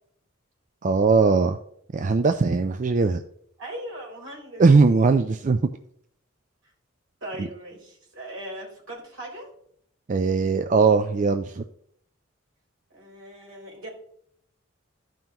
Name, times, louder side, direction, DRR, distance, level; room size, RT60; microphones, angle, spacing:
voice 1, 0.8-1.6 1.9-3.2 4.6-5.6 7.4-7.5 10.1-11.6, right 4 dB, 40° right, 8 dB, 0.3 m, -20 dB
voice 2, 3.6-4.6 7.2-9.5 12.9-13.9, right 1 dB, 70° right, -3 dB, 3.9 m, -39 dB
14.0 x 5.6 x 2.9 m, 0.69 s
head